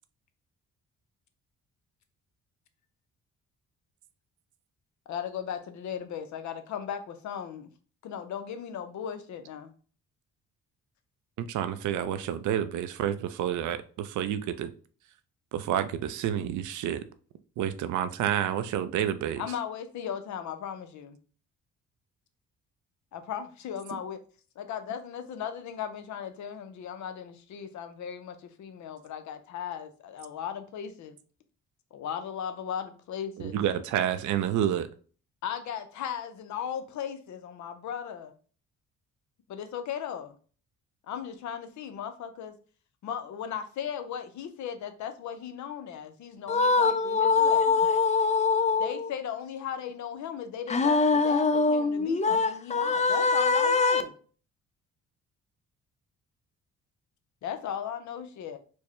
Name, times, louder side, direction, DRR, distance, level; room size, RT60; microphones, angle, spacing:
voice 1, 5.1-7.7 8.0-9.7 19.4-21.2 23.1-24.2 24.6-31.2 31.9-33.6 35.4-38.3 39.5-40.4 41.1-42.5 43.0-47.6 48.8-54.1 57.4-58.6, left 8 dB, 70° left, 0.6 m, -37 dB
voice 2, 11.4-14.7 15.5-17.0 17.6-19.4 33.4-34.9, right 10 dB, 75° right, 0.5 m, -29 dB
voice 3, 46.5-49.1 50.7-54.0, left 4 dB, 25° left, 0.4 m, -23 dB
4.4 x 2.1 x 3.0 m
cardioid pair, 90°, 30 cm